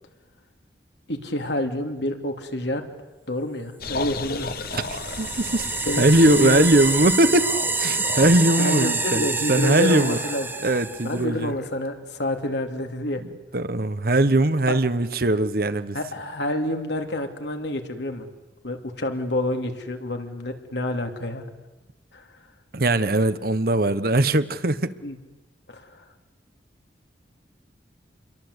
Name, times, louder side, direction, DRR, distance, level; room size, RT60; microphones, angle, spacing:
voice 1, 1.1-2.8 3.3-4.5 5.9-6.7 7.8-8.1 8.6-10.5 11.0-13.2 14.7-14.8 15.9-18.3 18.6-21.5 22.1-22.3 25.0-25.2 25.7-26.0, left 1 dB, 70° left, 4 dB, 2.9 m, -28 dB
sound 1, 3.8-11.7, left 3 dB, 55° left, 1.4 m, -35 dB
sound 2, 4.4-11.2, right 3 dB, 10° right, 1.1 m, -27 dB
voice 2, 4.7-5.7 6.0-7.5 7.8-10.2 10.6-11.5 13.5-16.0 22.7-24.9, right 1 dB, 55° right, 13 dB, 1.1 m, -20 dB
28.5 x 22.5 x 8.2 m, 1.2 s
head